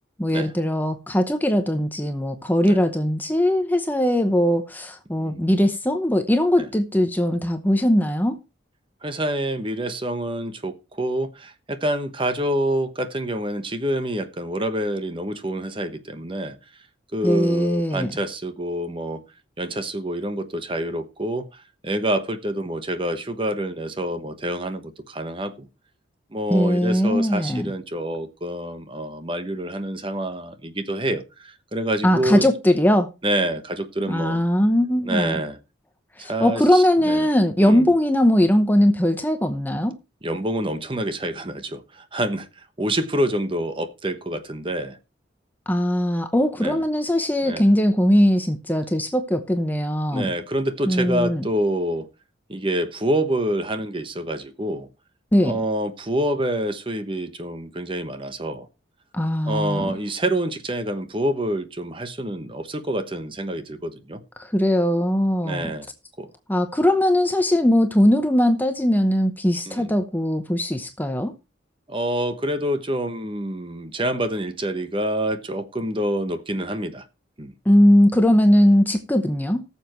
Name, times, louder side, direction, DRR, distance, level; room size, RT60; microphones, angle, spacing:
voice 1, 0.2-8.4 17.2-18.1 26.5-27.7 32.0-33.1 34.1-35.4 36.2-40.0 45.7-50.3 50.9-51.4 55.3-55.5 59.1-60.0 64.4-65.7 66.5-71.3 77.7-79.6, equal, 10° left, 0.8 m, -20 dB
voice 2, 5.2-5.5 6.6-6.7 9.0-16.6 17.1-19.2 19.6-25.7 26.3-32.4 33.2-34.4 35.0-35.6 36.2-37.3 37.6-37.9 40.2-45.0 46.6-46.8 47.4-47.6 50.1-52.1 52.5-54.9 55.4-58.7 59.5-64.2 65.4-65.9 66.2-66.3 69.7-69.9 71.9-77.1 77.4-77.5, right 1 dB, 25° right, 1.1 m, -27 dB
19.0 x 7.2 x 3.1 m
head